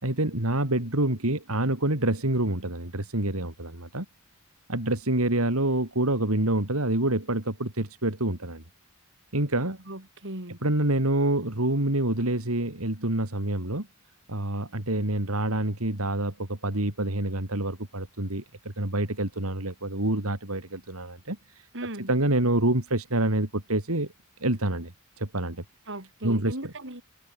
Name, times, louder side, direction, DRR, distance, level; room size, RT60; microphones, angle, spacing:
voice 1, 0.0-4.1 4.7-8.6 9.3-9.8 10.6-13.9 14.3-21.7 22.1-24.1 24.4-24.9 25.2-25.6 26.2-26.6, right 1 dB, 80° right, 3.7 m, -27 dB
voice 2, 9.9-10.6 21.7-22.1 25.9-27.0, right 1 dB, 60° right, 7.4 m, -37 dB
head